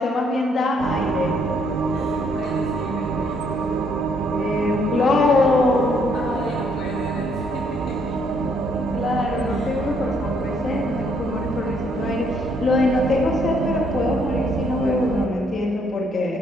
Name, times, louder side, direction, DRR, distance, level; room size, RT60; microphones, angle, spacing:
voice 1, 0.0-1.3 4.3-6.2 8.9-16.4, left 2 dB, 45° left, -1 dB, 1.5 m, -22 dB
sound 1, 0.8-15.3, right 5 dB, 85° right, 0.6 m, -26 dB
voice 2, 1.9-3.7 6.1-8.4 9.5-9.8, left 3 dB, 70° left, -2 dB, 0.9 m, -36 dB
12.0 x 5.5 x 4.9 m, 2.6 s
cardioid pair, 90°, 0 cm